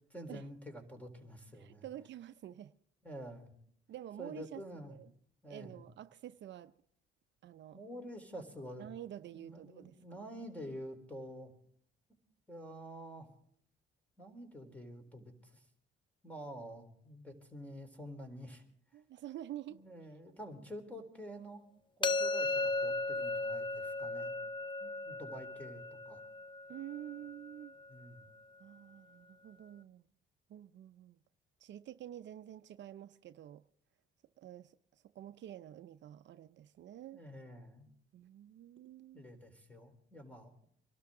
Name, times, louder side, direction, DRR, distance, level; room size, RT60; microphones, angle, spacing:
voice 1, 0.1-1.9 3.0-3.5 4.2-5.0 5.4-5.8 7.7-8.9 9.3-11.5 12.5-13.3 14.2-15.6 16.2-18.6 19.7-21.6 22.0-24.3 24.8-26.2 27.9-28.2 37.1-37.9 39.1-40.5, equal, 5° left, 3.8 m, -48 dB
voice 2, 1.5-2.7 3.9-4.6 4.9-5.1 5.5-6.7 7.4-7.8 8.8-10.2 18.9-19.8 26.7-27.8 28.6-30.0 30.5-31.2 31.6-33.6 34.4-37.2 38.1-39.2, right 12 dB, 65° right, 0.6 m, -48 dB
sound 1, 22.0-27.9, left 3 dB, 25° left, 0.6 m, -36 dB
25.0 x 12.5 x 3.7 m
cardioid pair, 90°, 20 cm